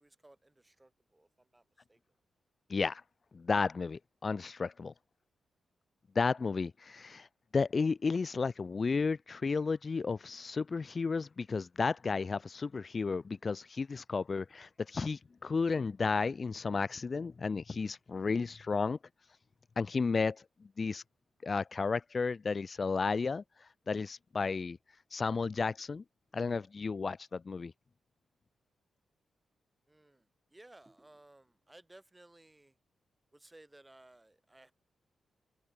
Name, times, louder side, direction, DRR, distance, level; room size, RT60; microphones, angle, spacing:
voice 1, 0.0-1.6 1.9-2.0 29.9-32.8 33.3-34.7, right 2 dB, 15° right, 5.2 m, -59 dB
voice 2, 2.7-3.0 3.3-4.9 6.1-7.3 7.5-19.0 19.8-20.4 20.8-21.0 21.4-24.8 25.1-26.0 26.3-27.7, left 4 dB, 40° left, 0.6 m, -33 dB
cardioid pair, 90°, 0 cm